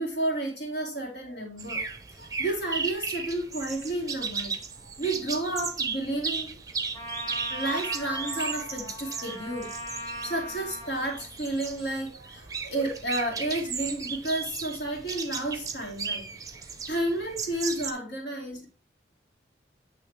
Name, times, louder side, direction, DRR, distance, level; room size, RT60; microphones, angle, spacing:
voice 1, 0.0-1.8 2.2-4.6 4.8-6.5 7.5-9.7 10.2-16.3 16.9-18.7, right 1 dB, 70° left, 2.2 m, -31 dB
sound 1, 1.6-17.9, right 5 dB, 20° right, 0.6 m, -35 dB
Trumpet, 6.9-11.3, equal, 15° left, 1.4 m, -40 dB
8.6 x 3.2 x 4.7 m
head